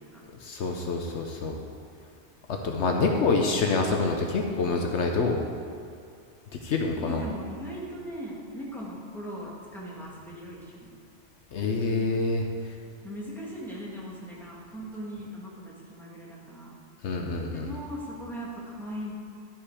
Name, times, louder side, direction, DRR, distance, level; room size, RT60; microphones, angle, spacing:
voice 1, 0.4-1.6 2.6-5.4 6.6-7.2 11.5-12.4 17.0-17.7, left 3 dB, 70° left, 2 dB, 1.0 m, -26 dB
voice 2, 7.0-10.9 13.0-16.7 17.5-19.1, equal, ahead, -6 dB, 1.9 m, -39 dB
12.0 x 5.7 x 4.8 m, 2.3 s
omnidirectional pair, 1.2 m